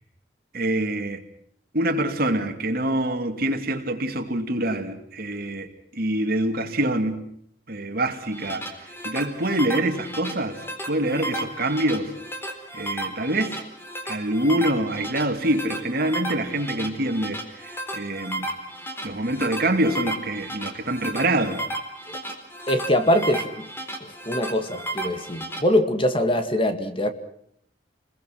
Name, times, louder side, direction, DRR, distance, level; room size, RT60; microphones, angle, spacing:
voice 1, 0.5-1.2 1.7-7.2 7.7-8.7 9.0-12.1 12.7-13.6 14.0-18.5 19.0-21.6, right 1 dB, 55° right, 2.7 m, -25 dB
sound 1, 8.1-25.6, right 1 dB, 15° left, 4.0 m, -34 dB
voice 2, 22.7-23.7 24.3-27.1, left 1 dB, 30° left, 2.0 m, -23 dB
29.5 x 22.0 x 6.1 m
head